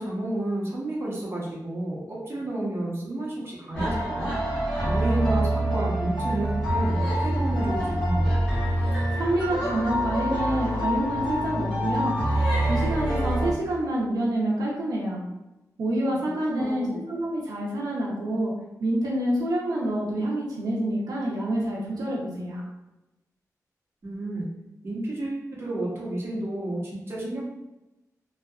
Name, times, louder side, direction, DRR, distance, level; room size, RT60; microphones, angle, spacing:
voice 1, 0.0-8.4 16.5-17.0 24.0-24.5 24.8-27.4, right 1 dB, 40° right, -5 dB, 0.8 m, -31 dB
sound 1, 3.7-13.5, right 1 dB, 15° left, 1.2 m, -25 dB
voice 2, 9.1-12.1 12.6-15.2 15.8-18.5 18.8-22.6, right 1 dB, 90° right, -4 dB, 0.5 m, -27 dB
2.7 x 2.2 x 2.3 m, 0.97 s
wide cardioid pair, 110°, 6 cm